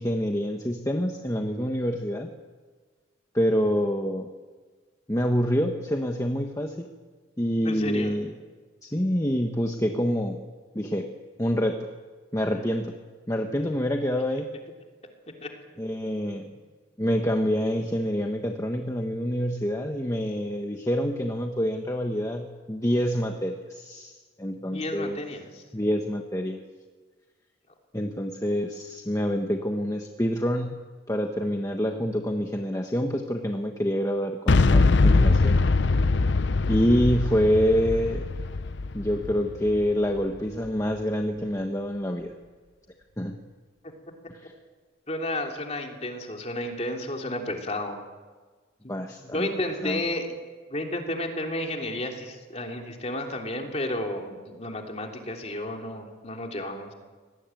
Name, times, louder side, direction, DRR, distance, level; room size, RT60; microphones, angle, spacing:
voice 1, 0.0-2.3 3.3-4.3 5.1-6.9 7.4-8.3 8.8-10.4 10.7-11.1 11.4-11.9 12.3-12.9 13.3-14.5 15.8-16.5 17.0-24.1 24.4-25.2 25.7-26.6 27.9-30.8 31.1-35.6 36.7-38.2 38.9-42.3 43.2-43.4 44.3-44.5 48.9-49.5 49.8-50.0, equal, 15° left, 3 dB, 1.3 m, -26 dB
voice 2, 7.6-8.1 15.4-15.5 16.3-16.5 24.5-25.6 45.1-48.0 48.8-48.9 49.2-50.3 50.7-56.9, left 1 dB, 35° left, 2 dB, 3.3 m, -32 dB
Boom, 34.5-40.4, left 3 dB, 65° left, 0.6 m, -22 dB
24.5 x 19.5 x 9.2 m, 1.4 s
head